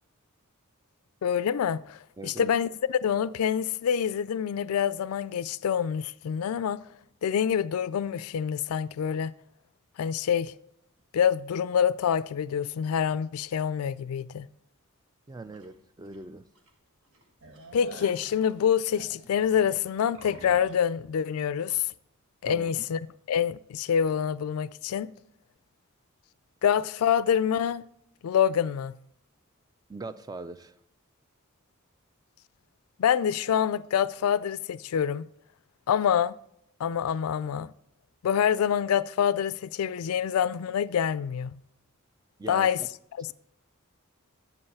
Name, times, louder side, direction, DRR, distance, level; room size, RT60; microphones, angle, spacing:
voice 1, 1.2-6.8 7.2-9.3 10.0-10.5 11.1-14.5 17.7-21.9 22.4-23.0 23.3-25.1 26.6-27.9 28.2-28.9 33.0-35.3 35.9-36.3 36.8-37.7 38.2-41.6 42.5-42.8 43.2-43.3, left 8 dB, 80° left, 0.3 m, -26 dB
voice 2, 2.2-2.5 15.3-16.5 22.5-22.8 29.9-30.7 42.4-42.7, right 3 dB, 20° right, 0.3 m, -41 dB
sound 1, 15.5-15.7 16.1-16.2 16.6-16.7 17.0-20.8, right 2 dB, 65° right, 1.5 m, -48 dB
8.0 x 5.5 x 6.9 m
head